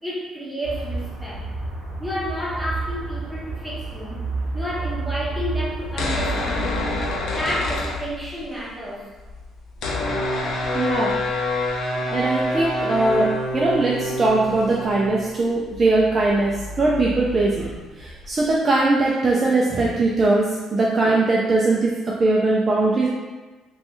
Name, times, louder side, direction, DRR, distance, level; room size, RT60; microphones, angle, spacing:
voice 1, 0.0-1.4 2.0-4.2 4.5-7.0 7.3-9.1, equal, ahead, -7 dB, 0.8 m, -31 dB
sound 1, 0.6-7.2, right 3 dB, 90° right, 0.7 m, -30 dB
sound 2, 5.8-8.6 8.8-8.9 9.1-18.5, left 1 dB, 65° left, 0.5 m, -28 dB
voice 2, 10.7-11.2 12.1-23.1, right 2 dB, 25° right, -4 dB, 0.3 m, -20 dB
3.1 x 2.2 x 3.0 m, 1.2 s
cardioid pair, 140°, 0 cm